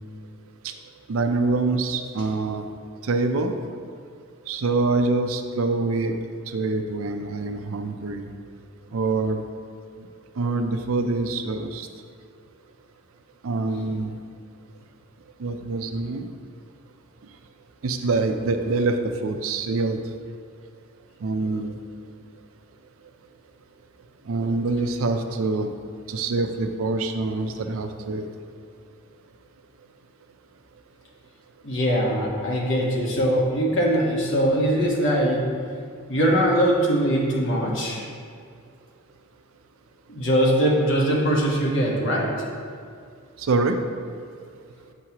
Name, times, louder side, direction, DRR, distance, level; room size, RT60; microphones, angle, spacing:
voice 1, 1.1-2.7 3.0-3.6 4.5-6.1 6.5-8.3 8.9-9.4 10.0-10.1 10.4-11.9 13.4-14.2 15.4-16.3 17.8-20.0 21.2-21.8 24.3-25.7 26.1-28.3 43.4-43.8, right 3 dB, 70° right, 6 dB, 0.5 m, -25 dB
voice 2, 31.6-35.4 36.1-38.1 40.1-42.4, equal, 55° left, -3 dB, 1.2 m, -22 dB
7.3 x 6.2 x 2.9 m, 2.3 s
head